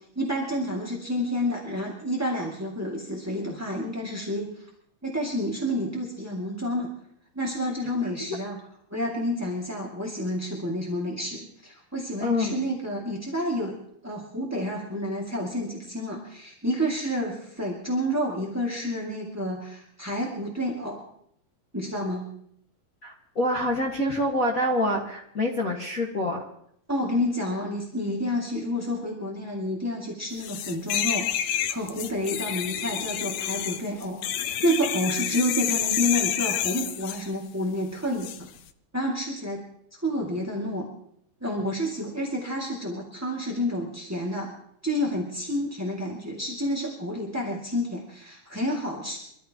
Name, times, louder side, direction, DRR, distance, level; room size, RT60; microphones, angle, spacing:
voice 1, 0.1-4.7 5.0-6.9 7.3-8.6 8.9-13.7 14.0-21.1 21.7-22.3 26.9-38.5 38.9-39.6 40.0-40.9 41.4-44.5 44.8-49.2, equal, 10° right, -3 dB, 1.1 m, -29 dB
voice 2, 12.2-12.6 23.0-26.4, left 1 dB, 40° left, -3 dB, 1.2 m, -26 dB
sound 1, 30.4-37.3 38.2-38.4, left 10 dB, 80° left, 1.6 m, -29 dB
24.5 x 14.0 x 3.0 m, 0.69 s
omnidirectional pair, 4.1 m